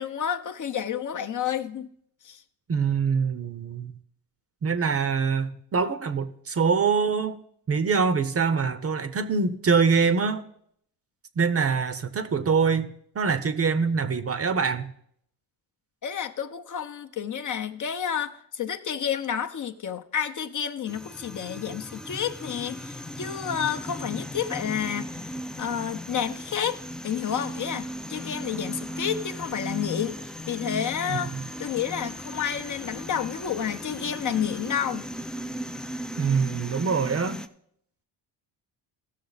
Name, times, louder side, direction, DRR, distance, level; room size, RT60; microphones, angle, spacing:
voice 1, 0.0-1.9 2.2-2.4 16.0-25.1 25.6-26.8 27.0-30.2 30.5-31.3 31.6-35.0, left 8 dB, 45° left, 0.7 m, -30 dB
voice 2, 2.7-3.9 4.6-7.4 7.7-10.4 11.4-14.9 31.1-31.4 36.2-37.4, right 5 dB, 35° right, 0.7 m, -24 dB
sound 1, 20.9-37.5, equal, ahead, 0.3 m, -37 dB
15.5 x 6.4 x 4.0 m
cardioid pair, 80°, 44 cm